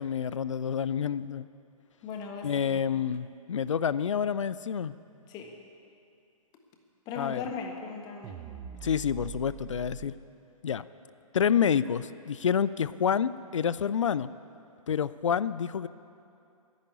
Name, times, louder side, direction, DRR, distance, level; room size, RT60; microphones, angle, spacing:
voice 1, 0.0-1.5 2.4-4.9 7.1-7.4 8.8-10.1 10.6-10.9 11.3-14.3 14.9-15.9, left 8 dB, 60° left, 17 dB, 0.5 m, -28 dB
voice 2, 2.0-2.8 5.3-5.5 7.1-8.3, left 5 dB, 20° left, 3 dB, 1.5 m, -38 dB
sound 1, 8.2-10.1, right 10 dB, 15° right, 0.5 m, -43 dB
10.5 x 10.5 x 9.5 m, 2.6 s
figure-of-eight pair, 125°, 18 cm